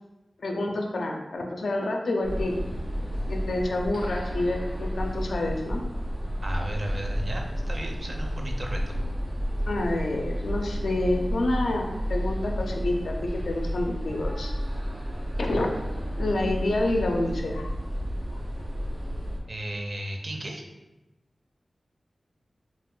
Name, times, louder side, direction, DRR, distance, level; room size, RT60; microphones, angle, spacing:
voice 1, 0.4-2.6 3.3-5.8 9.7-13.1 13.5-14.5 15.4-15.7 16.2-17.7, left 2 dB, 85° left, 1 dB, 0.4 m, -28 dB
sound 1, 2.2-19.4, equal, 85° right, 1.0 m, -31 dB
voice 2, 6.4-9.0 19.5-20.7, right 1 dB, 45° right, 1 dB, 0.4 m, -35 dB
2.4 x 2.4 x 3.6 m, 1.1 s
wide cardioid pair, 90°, 0 cm